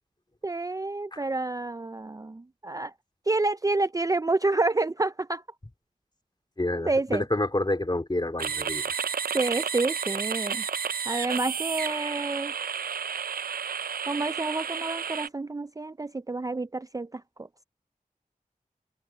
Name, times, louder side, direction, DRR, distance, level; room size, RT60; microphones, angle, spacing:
voice 1, 0.4-2.9 3.3-5.4 6.9-7.2 9.3-10.6 11.1-12.5 14.0-17.5, right 2 dB, 25° right, 0.4 m, -29 dB
voice 2, 6.6-9.0, left 1 dB, 30° left, 2.9 m, -28 dB
sound 1, 8.4-15.3, right 7 dB, 85° right, 0.5 m, -31 dB
open air
cardioid pair, 45°, 15 cm